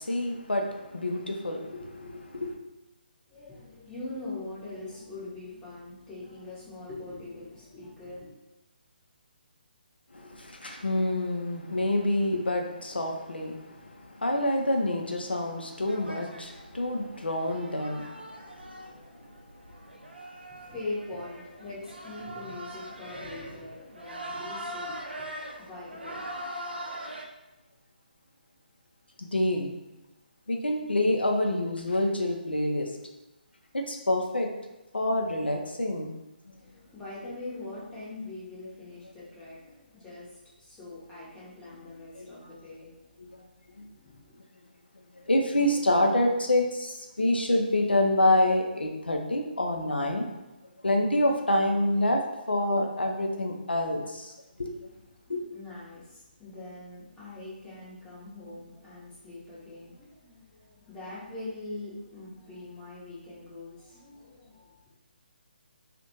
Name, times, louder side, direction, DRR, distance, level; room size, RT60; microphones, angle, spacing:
voice 1, 0.0-2.6 10.1-19.0 29.2-29.7 30.5-32.9 33.7-34.5 34.9-36.1 42.2-42.5 43.2-43.4 43.8-43.9 45.3-50.3 50.8-54.3 54.6-54.7 55.3-55.4, left 1 dB, 80° left, 2 dB, 0.4 m, -27 dB
voice 2, 3.3-8.3 20.3-26.4 36.5-43.4 43.8-44.4 55.2-64.9, left 2 dB, 10° left, -9 dB, 0.7 m, -42 dB
sound 1, 15.9-27.2, right 1 dB, 85° right, 0.4 m, -42 dB
2.4 x 2.1 x 2.9 m, 1.0 s
figure-of-eight pair, 140°, 5 cm